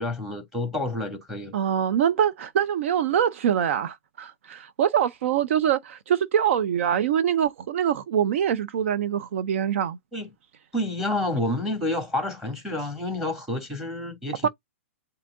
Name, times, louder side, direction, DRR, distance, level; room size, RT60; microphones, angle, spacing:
voice 1, 0.0-1.6 10.1-10.3 10.7-14.5, left 1 dB, 5° right, 2.3 m, -29 dB
voice 2, 1.5-10.0 14.4-14.5, right 9 dB, 60° right, 0.5 m, -24 dB
7.4 x 2.8 x 2.5 m
hypercardioid pair, 130°, 8 cm